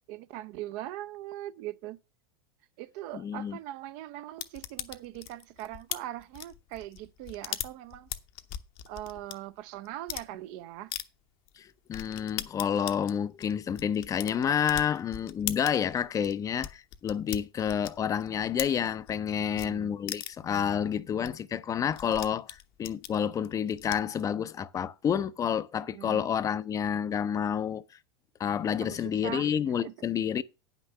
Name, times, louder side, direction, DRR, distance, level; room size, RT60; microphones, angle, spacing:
voice 1, 0.1-2.0 2.8-8.1 8.9-10.9 19.4-20.0 25.9-26.3 28.8-29.5 29.8-29.9, right 14 dB, 55° right, 0.7 m, -41 dB
voice 2, 3.1-3.6 11.6-27.8 28.4-30.4, left 8 dB, 25° left, 0.6 m, -29 dB
sound 1, 4.4-9.3 9.9-10.3 10.9-11.0 11.5-11.6 11.9-19.2 19.6-19.7 20.1-20.5 20.9-21.0 21.2-21.3 21.6-24.2, left 12 dB, 45° left, 0.9 m, -39 dB
9.5 x 6.0 x 6.5 m
hypercardioid pair, 90°, 12 cm